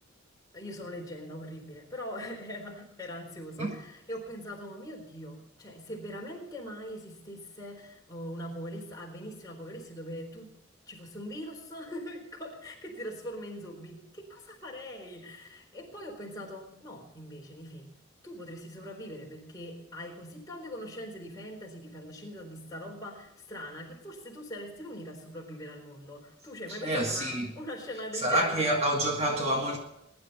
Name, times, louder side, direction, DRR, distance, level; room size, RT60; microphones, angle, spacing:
voice 1, 0.5-10.5 10.9-17.9 18.2-28.6, equal, 20° left, 4.0 m, -42 dB
voice 2, 26.7-27.5 28.1-29.8, right 1 dB, 30° right, 1.7 m, -28 dB
21.5 x 11.0 x 4.2 m
head